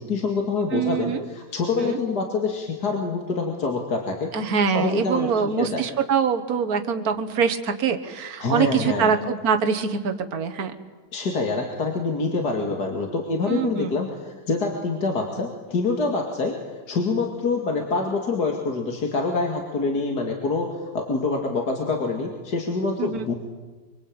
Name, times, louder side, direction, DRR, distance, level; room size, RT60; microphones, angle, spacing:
voice 1, 0.1-1.1 1.5-4.0 4.7-5.3 5.6-5.8 8.4-9.1 11.1-14.1 14.5-15.5 15.7-16.5 16.9-18.8 19.1-20.7 20.9-23.3, left 3 dB, 65° left, 2 dB, 2.9 m, -25 dB
voice 2, 0.7-1.3 1.8-2.0 4.3-10.7 13.5-13.9 23.0-23.3, right 6 dB, 60° right, 6 dB, 1.9 m, -24 dB
25.5 x 25.5 x 8.9 m, 1.3 s
omnidirectional pair, 1.8 m